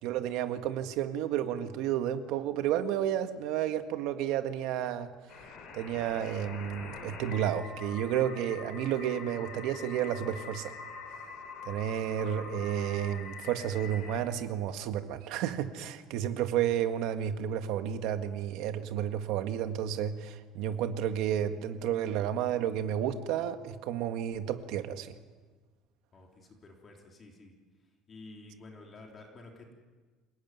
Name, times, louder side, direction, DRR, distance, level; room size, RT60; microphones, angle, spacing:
voice 1, 0.0-5.1 5.7-10.7 11.7-25.1, right 10 dB, 65° right, 7 dB, 1.8 m, -31 dB
sound 1, 5.3-14.2, left 4 dB, 45° left, 6.3 m, -44 dB
voice 2, 26.1-27.5 28.1-29.7, left 2 dB, 25° left, 1 dB, 3.5 m, -51 dB
28.0 x 19.0 x 9.4 m, 1.4 s
cardioid pair, 165°, 0 cm